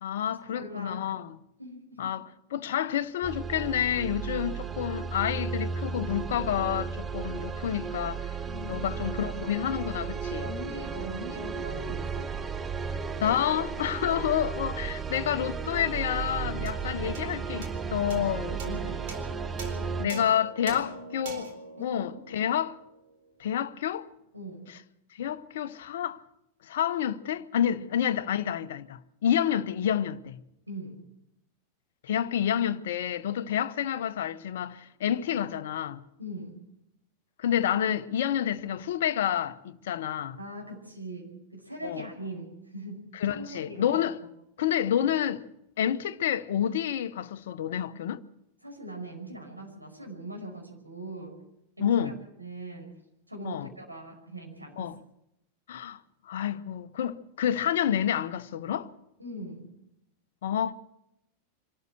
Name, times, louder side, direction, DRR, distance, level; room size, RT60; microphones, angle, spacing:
voice 1, 0.0-1.4 2.0-8.4 8.7-10.5 13.2-18.6 20.0-21.5 21.8-22.8 23.4-24.1 25.1-26.2 26.6-30.4 32.0-36.0 37.4-40.4 41.8-42.0 43.1-44.2 44.6-45.5 45.8-48.2 51.8-52.1 53.4-53.7 54.8-55.0 55.7-56.0 56.2-58.9 60.4-60.7, left 10 dB, 60° left, 0.8 m, -29 dB
voice 2, 0.5-1.1 1.6-2.1 8.4-8.9 10.4-12.3 16.9-17.2 18.5-19.1 20.0-20.3 20.7-20.8 21.8-22.4 24.3-24.7 27.7-27.8 30.7-31.0 36.2-36.6 40.4-44.0 48.6-51.4 51.8-53.0 53.3-54.9 59.2-59.7, right 1 dB, 85° right, 5.5 m, -41 dB
sound 1, 3.2-20.1, right 6 dB, 15° right, 0.7 m, -34 dB
sound 2, 16.6-23.3, right 2 dB, 55° right, 4.3 m, -43 dB
25.0 x 13.5 x 7.8 m
figure-of-eight pair, 90°, 0 cm